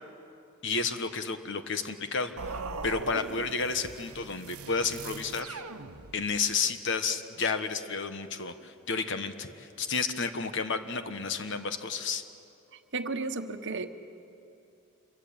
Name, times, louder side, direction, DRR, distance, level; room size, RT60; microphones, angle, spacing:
voice 1, 0.6-5.6 6.1-12.2, left 4 dB, 55° left, 9 dB, 1.5 m, -31 dB
sound 1, 2.4-6.5, right 4 dB, 90° right, 1.0 m, -40 dB
voice 2, 12.9-13.9, right 3 dB, 55° right, 8 dB, 1.2 m, -33 dB
27.0 x 23.5 x 9.0 m, 2.7 s
head